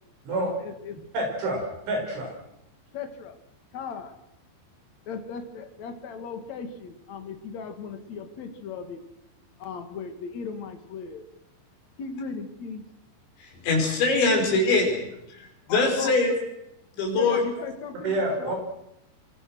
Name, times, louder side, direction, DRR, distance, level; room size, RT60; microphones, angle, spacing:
voice 1, 0.3-1.0 2.9-3.4 3.7-4.1 5.1-9.0 9.6-11.2 12.0-12.8 13.5-13.7 15.7-16.2 17.1-18.5, left 5 dB, 45° left, 6 dB, 2.8 m, -37 dB
voice 2, 1.1-2.3 18.0-18.5, right 1 dB, 85° right, 1 dB, 8.6 m, -28 dB
voice 3, 13.4-14.9 15.3-16.4 16.9-17.4, left 3 dB, 75° left, 1 dB, 7.6 m, -23 dB
25.5 x 24.0 x 6.3 m, 0.83 s
omnidirectional pair, 5.3 m